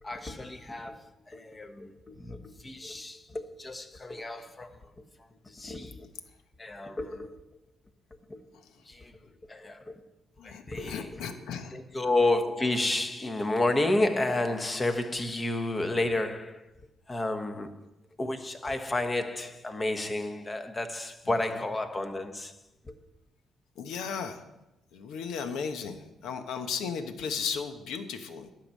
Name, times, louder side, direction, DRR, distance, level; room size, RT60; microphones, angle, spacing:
voice 1, 0.0-5.0 5.4-6.1 6.6-7.4 8.3-8.4 8.9-10.0 10.4-11.2 11.7-16.7 17.1-17.7 18.2-22.5 22.9-23.0, left 2 dB, 25° left, 1.3 m, -31 dB
voice 2, 10.4-11.8 23.8-24.4 24.9-28.5, left 6 dB, 85° left, 1.0 m, -35 dB
11.5 x 5.9 x 8.3 m
cardioid pair, 90°, 0 cm